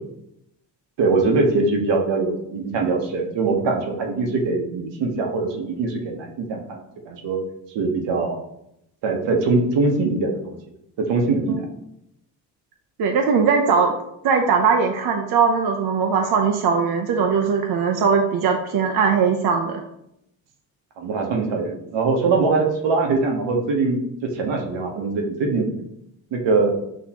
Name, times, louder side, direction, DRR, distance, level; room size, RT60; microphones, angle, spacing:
voice 1, 1.0-6.8 7.1-7.4 7.7-8.4 9.0-10.6 11.0-11.6 21.0-25.7 26.3-26.8, right 3 dB, 75° right, 2 dB, 1.1 m, -22 dB
voice 2, 13.0-14.0 14.2-19.8, right 5 dB, 55° right, 2 dB, 0.7 m, -20 dB
6.2 x 2.9 x 2.9 m, 0.80 s
supercardioid pair, 65°, 44 cm